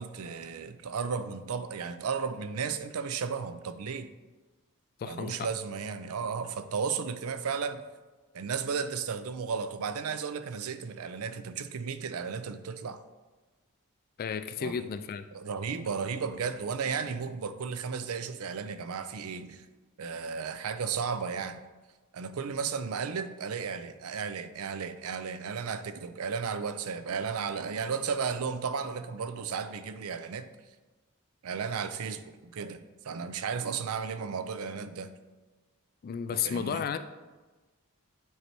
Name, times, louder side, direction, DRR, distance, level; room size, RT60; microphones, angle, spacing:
voice 1, 0.0-4.1 5.0-7.8 8.3-13.0 14.6-14.7 15.3-19.6 20.0-21.6 22.1-30.5 31.4-35.1 36.3-36.8, right 6 dB, 75° right, 0.5 m, -34 dB
voice 2, 5.0-5.5 14.2-15.3 36.0-37.0, left 7 dB, 45° left, 0.3 m, -33 dB
9.4 x 3.2 x 4.5 m
head